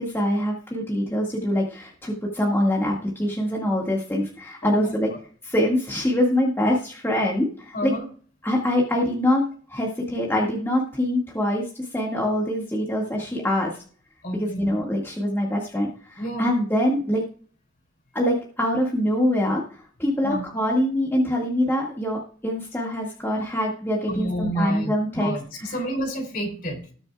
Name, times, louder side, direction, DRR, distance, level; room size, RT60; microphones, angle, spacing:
voice 1, 0.0-5.1 5.4-7.9 8.4-11.6 11.9-13.7 14.3-17.2 18.1-25.3 25.6-25.7, left 1 dB, 10° left, -2 dB, 1.8 m, -24 dB
voice 2, 4.6-4.9 7.7-8.1 14.2-14.7 16.2-16.5 20.2-20.4 24.1-26.9, equal, 45° left, 5 dB, 3.2 m, -29 dB
20.0 x 6.8 x 2.3 m, 0.44 s
head